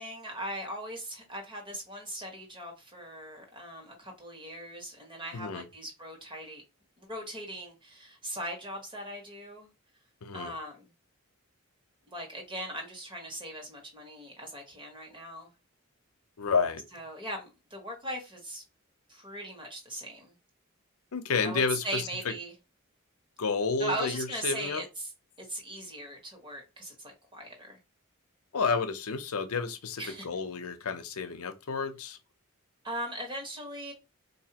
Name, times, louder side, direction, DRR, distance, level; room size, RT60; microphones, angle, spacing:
voice 1, 0.0-6.6 7.0-9.7 10.3-10.9 12.1-15.5 16.9-18.6 19.1-20.4 21.4-22.5 23.8-25.1 25.4-27.8 30.0-30.3 32.8-33.9, right 1 dB, 20° right, 1.3 m, -39 dB
voice 2, 5.3-5.7 10.2-10.5 16.4-16.8 21.1-22.0 23.4-24.8 28.5-32.2, left 4 dB, 85° left, 0.7 m, -30 dB
4.2 x 2.7 x 2.9 m
head